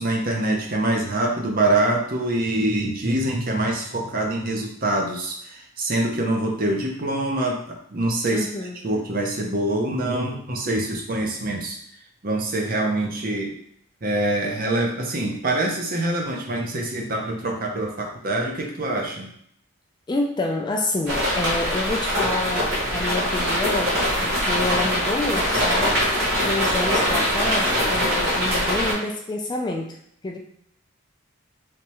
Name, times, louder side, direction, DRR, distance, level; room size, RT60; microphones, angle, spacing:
voice 1, 0.0-8.5 8.8-11.8 12.2-13.6 14.0-19.3 27.7-27.8, right 1 dB, 45° right, 1 dB, 0.7 m, -25 dB
voice 2, 8.3-9.0 20.1-25.9 26.4-30.0 30.2-30.4, left 2 dB, 20° left, 2 dB, 0.3 m, -28 dB
sound 1, 21.1-28.9, equal, 70° right, 1.4 m, -22 dB
3.4 x 3.1 x 3.0 m, 0.69 s
head